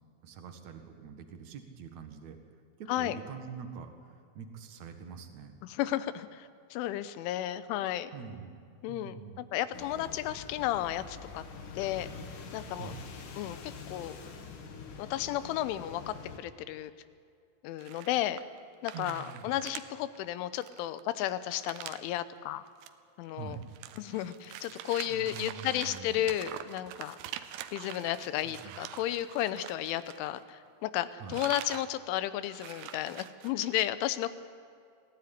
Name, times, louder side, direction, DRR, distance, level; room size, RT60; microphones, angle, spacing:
voice 1, 0.2-2.4 2.8-5.6 8.1-8.5 8.9-9.4 12.7-13.0 18.9-19.6 23.3-23.6 25.1-26.3 28.4-28.8 31.2-31.4, right 6 dB, 55° right, 6 dB, 2.1 m, -45 dB
voice 2, 5.6-8.1 8.8-11.4 11.8-12.1 12.5-12.9 13.4-14.2 15.0-16.9 17.6-18.4 18.8-22.6 23.2-23.6 24.0-27.2 27.7-34.3, left 13 dB, 90° left, 13 dB, 3.3 m, -33 dB
sound 1, 9.7-16.4, left 5 dB, 55° left, 2.6 m, -45 dB
sound 2, 17.8-18.6 18.9-19.9 20.2-20.3 20.6-22.1 22.7-22.9 23.3-30.7 31.0-31.9 32.2-32.3 32.5-33.7, right 12 dB, 80° right, 2.7 m, -45 dB
22.5 x 15.5 x 10.0 m, 2.3 s
omnidirectional pair, 5.5 m